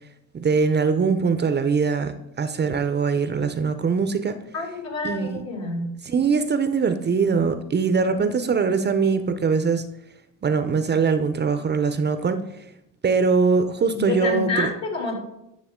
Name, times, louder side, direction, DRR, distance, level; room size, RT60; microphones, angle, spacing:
voice 1, 0.3-4.4 5.0-5.4 6.0-9.8 10.4-12.4 13.0-14.7, right 5 dB, 35° right, 0.6 m, -22 dB
voice 2, 4.5-5.9 8.1-8.5 13.9-15.1, left 3 dB, 60° left, 2.9 m, -28 dB
9.5 x 6.1 x 3.7 m
cardioid pair, 90°, 30 cm